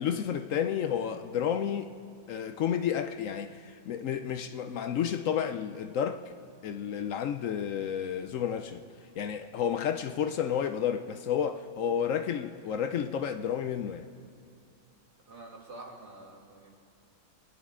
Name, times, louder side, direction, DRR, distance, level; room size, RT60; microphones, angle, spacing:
voice 1, 0.0-1.9 2.3-6.3 6.6-8.8 9.2-14.1, left 8 dB, 65° left, 0.8 m, -31 dB
voice 2, 15.3-16.7, right 2 dB, 85° right, 2.8 m, -47 dB
27.0 x 10.5 x 3.7 m
omnidirectional pair, 1.7 m